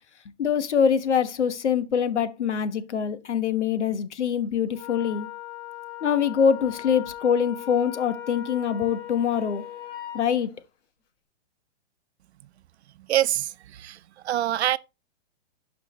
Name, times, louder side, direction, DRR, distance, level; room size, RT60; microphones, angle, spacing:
voice 1, 0.4-5.3 6.0-9.7 10.1-10.5, left 7 dB, 85° left, 1.3 m, -24 dB
Wind instrument woodwind instrument, 4.7-10.3, left 12 dB, 60° left, 4.4 m, -39 dB
voice 2, 13.1-14.0 14.2-14.8, right 12 dB, 70° right, 0.6 m, -25 dB
11.5 x 5.0 x 3.1 m
hypercardioid pair, 150°, 34 cm